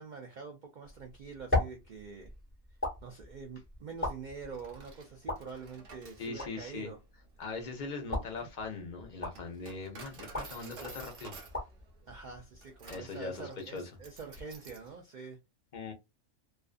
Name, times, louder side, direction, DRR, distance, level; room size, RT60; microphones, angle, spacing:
voice 1, 0.0-2.3 3.0-7.0 8.4-8.5 12.1-15.4, right 5 dB, 70° right, 0.4 m, -45 dB
sound 1, 0.8-13.0, left 2 dB, 10° left, 1.0 m, -40 dB
Coin (dropping), 4.4-14.9, right 3 dB, 50° right, 0.9 m, -51 dB
voice 2, 6.2-6.9 7.4-11.4 12.9-13.9 15.7-15.9, left 4 dB, 50° left, 0.6 m, -40 dB
2.4 x 2.4 x 2.4 m
omnidirectional pair, 1.4 m